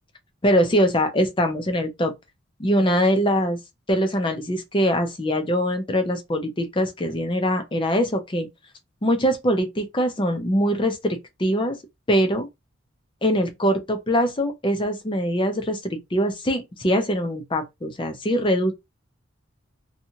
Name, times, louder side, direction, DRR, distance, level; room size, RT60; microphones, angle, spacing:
voice 1, 0.4-2.1 2.6-3.6 3.9-8.5 9.0-11.8 12.1-12.5 13.2-18.7, equal, 25° left, 0.5 m, -22 dB
2.8 x 2.3 x 2.7 m
head